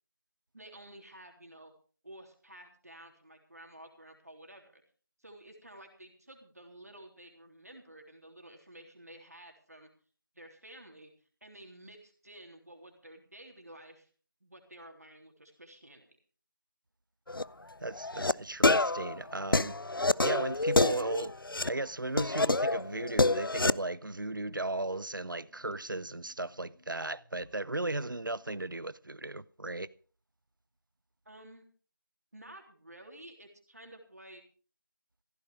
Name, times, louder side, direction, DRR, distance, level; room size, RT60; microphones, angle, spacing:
voice 1, 0.5-1.7 2.0-4.8 5.2-9.9 10.4-14.1 14.4-16.1 31.3-31.6 32.3-34.4, right 1 dB, 45° right, 3.5 m, -52 dB
sound 1, 17.3-17.4 18.0-18.3 18.6-21.7 22.2-23.8, left 2 dB, 80° left, 0.6 m, -27 dB
voice 2, 17.8-19.8 20.2-21.3 21.7-29.9, right 2 dB, 65° right, 0.8 m, -36 dB
sound 2, 21.9-29.0, equal, 5° left, 3.0 m, -65 dB
15.5 x 12.5 x 4.9 m
figure-of-eight pair, 180°, 11 cm